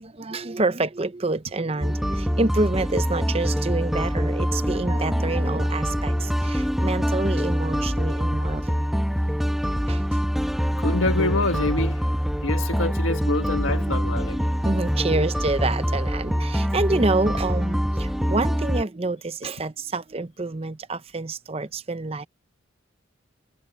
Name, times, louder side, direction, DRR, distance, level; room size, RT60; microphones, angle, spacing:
voice 1, 0.0-8.8 9.9-10.2 13.6-14.2 14.6-22.2, right 2 dB, 30° right, 0.7 m, -28 dB
sound 1, 1.8-18.8, equal, ahead, 1.1 m, -24 dB
voice 2, 10.8-12.1 12.4-14.4, left 2 dB, 80° left, 1.6 m, -26 dB
head